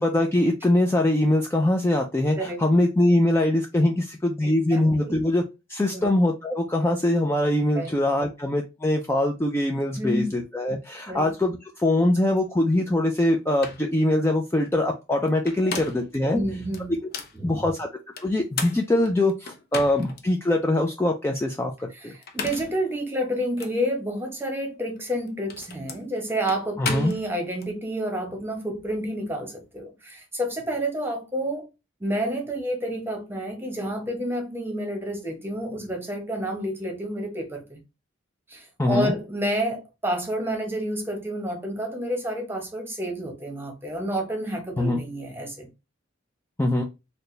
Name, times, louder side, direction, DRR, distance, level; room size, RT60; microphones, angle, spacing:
voice 1, 0.0-5.4 5.7-16.4 17.4-17.9 18.2-22.1 26.8-27.1 38.8-39.1 44.8-45.0 46.6-46.8, left 1 dB, 10° left, 0.3 m, -23 dB
voice 2, 2.4-2.7 4.4-5.2 5.9-6.1 7.7-8.0 10.0-10.4 11.1-11.3 15.6-15.8 16.3-17.0 17.3-17.6 21.9-31.7 32.0-37.8 38.5-45.7, equal, 10° right, 0.9 m, -29 dB
sound 1, 13.2-13.3 13.6-13.9 15.3-16.2 16.7-17.4 18.2-20.2 20.7-20.8 22.1-22.8 23.6-23.7 25.0-27.7, left 5 dB, 50° left, 0.7 m, -35 dB
4.2 x 2.1 x 3.2 m
head